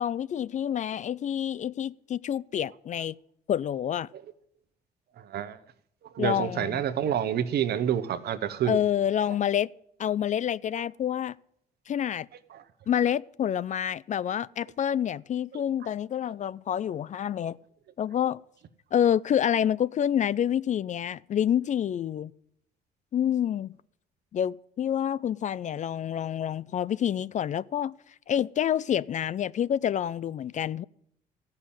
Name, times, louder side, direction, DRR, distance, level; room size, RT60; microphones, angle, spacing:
voice 1, 0.0-3.2 3.5-4.1 6.2-6.8 8.7-9.7 10.0-11.4 11.9-12.3 12.9-17.6 18.0-18.4 18.9-22.3 23.1-23.8 24.3-27.9 28.3-30.8, left 9 dB, 45° left, 0.4 m, -28 dB
voice 2, 5.2-5.6 6.1-8.8 12.5-12.6 15.5-15.6, right 9 dB, 65° right, 0.9 m, -28 dB
14.0 x 5.7 x 8.7 m
supercardioid pair, 75°, 18 cm